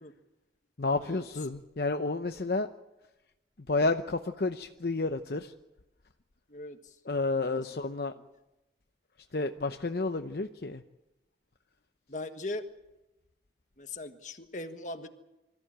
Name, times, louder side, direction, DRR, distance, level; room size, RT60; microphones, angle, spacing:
voice 1, 0.8-2.7 3.7-5.5 7.0-8.1 9.3-10.8, left 3 dB, 60° left, 7 dB, 0.8 m, -30 dB
voice 2, 12.1-12.6 13.8-15.1, left 2 dB, 45° left, 7 dB, 1.5 m, -39 dB
25.5 x 14.5 x 8.9 m, 1.0 s
head